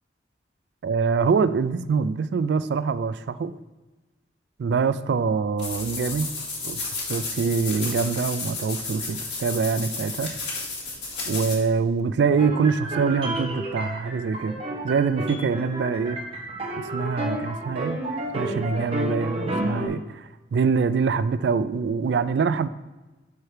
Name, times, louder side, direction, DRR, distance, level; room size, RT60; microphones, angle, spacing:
voice 1, 0.8-3.5 4.6-6.3 6.6-10.3 11.3-14.6 14.8-16.2 16.8-18.0 18.3-22.7, right 5 dB, 70° right, 14 dB, 0.3 m, -24 dB
sound 1, 5.6-11.6, left 3 dB, 80° left, 2.3 m, -32 dB
sound 2, 12.4-19.9, right 1 dB, 30° right, 0.9 m, -31 dB
5.7 x 4.7 x 4.8 m, 1.1 s
head